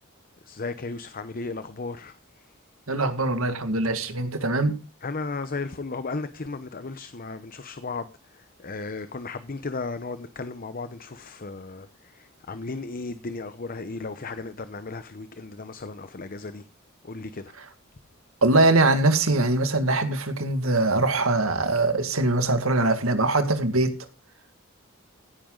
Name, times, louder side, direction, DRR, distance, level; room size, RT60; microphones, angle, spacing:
voice 1, 0.5-2.2 5.0-8.1 8.6-11.9 12.1-16.6 17.0-17.5, left 3 dB, 45° left, 0.8 m, -35 dB
voice 2, 2.9-4.8 17.6-17.7 18.4-23.9, right 2 dB, 80° right, 2.0 m, -22 dB
16.5 x 10.0 x 3.9 m
head